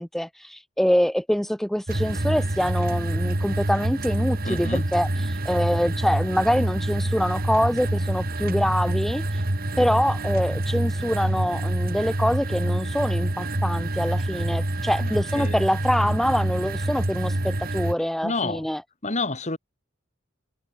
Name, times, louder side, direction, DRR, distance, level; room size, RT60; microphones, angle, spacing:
voice 1, 0.0-9.4 9.8-18.8, equal, ahead, 0.4 m, -25 dB
sound 1, 1.9-17.9, right 1 dB, 45° right, 2.0 m, -26 dB
voice 2, 4.4-4.8 15.0-15.1 15.3-15.5 18.2-18.7 19.0-19.6, left 3 dB, 35° left, 2.9 m, -28 dB
head